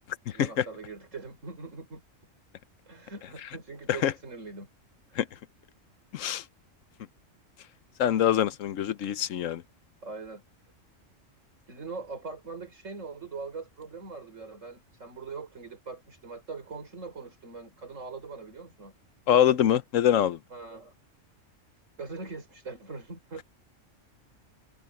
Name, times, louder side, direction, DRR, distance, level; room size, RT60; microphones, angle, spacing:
voice 1, 0.3-2.0 2.9-4.7 5.1-5.2 10.0-10.4 11.7-18.9 20.5-20.9 22.0-23.4, right 4 dB, 75° right, 4.5 m, -41 dB
voice 2, 6.1-6.4 8.0-9.6 19.3-20.4, left 10 dB, 80° left, 1.1 m, -24 dB
omnidirectional pair, 1.3 m